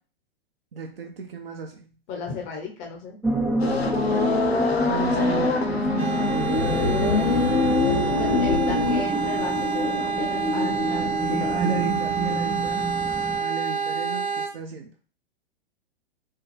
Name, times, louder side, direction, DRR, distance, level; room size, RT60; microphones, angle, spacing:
voice 1, 0.7-1.9 4.1-4.6 4.8-7.6 11.2-12.9 13.4-14.9, right 6 dB, 65° right, 2 dB, 0.8 m, -35 dB
voice 2, 2.1-3.2 8.2-11.6, left 5 dB, 25° left, 1 dB, 0.8 m, -35 dB
sound 1, 3.2-13.4, right 1 dB, 5° right, 0.4 m, -28 dB
sound 2, 3.6-9.0, left 4 dB, 75° left, 0.8 m, -24 dB
sound 3, 6.0-14.5, right 6 dB, 80° right, 1.1 m, -28 dB
5.5 x 2.2 x 3.3 m, 0.38 s
figure-of-eight pair, 110°, 31 cm